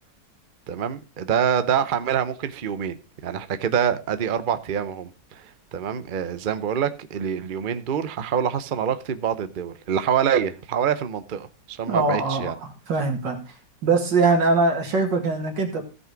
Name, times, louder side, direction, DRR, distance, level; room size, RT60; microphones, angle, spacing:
voice 1, 0.7-3.0 3.2-12.5, right 8 dB, 60° right, 0.5 m, -26 dB
voice 2, 11.8-12.5 12.9-13.5 13.8-15.8, right 3 dB, 75° right, 2.6 m, -22 dB
15.5 x 5.5 x 4.5 m
omnidirectional pair, 1.9 m